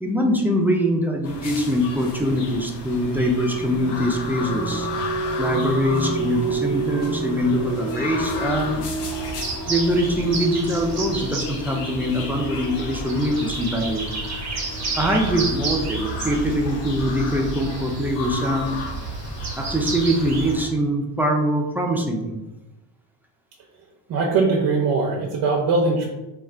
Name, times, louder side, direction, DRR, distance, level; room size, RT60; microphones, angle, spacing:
voice 1, 0.0-4.9 5.4-8.8 9.7-14.1 15.0-18.8 19.6-22.3, equal, 5° right, -1 dB, 0.3 m, -23 dB
sound 1, 1.2-20.7, left 3 dB, 60° left, 0.8 m, -34 dB
sound 2, 3.5-16.0, right 3 dB, 30° left, 1.5 m, -31 dB
sound 3, 8.2-20.5, right 3 dB, 35° right, 1.0 m, -32 dB
voice 2, 24.1-26.0, right 3 dB, 50° right, -1 dB, 0.6 m, -21 dB
2.4 x 2.1 x 3.7 m, 1.0 s
supercardioid pair, 75°, 47 cm